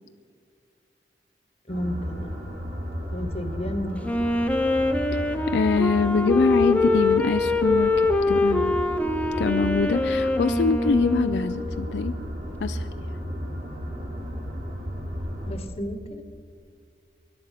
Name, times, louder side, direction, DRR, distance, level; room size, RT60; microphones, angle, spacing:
voice 1, 1.7-2.5 3.1-4.2 15.5-16.2, equal, 35° left, 9 dB, 1.2 m, -32 dB
sound 1, 1.7-15.5, equal, 60° right, 5.3 m, -34 dB
Wind instrument woodwind instrument, 4.0-11.7, left 2 dB, 5° left, 0.7 m, -24 dB
voice 2, 5.5-8.8 9.4-12.2 12.6-12.9, left 4 dB, 75° left, 10 dB, 0.4 m, -24 dB
21.0 x 11.0 x 5.8 m, 2.2 s
head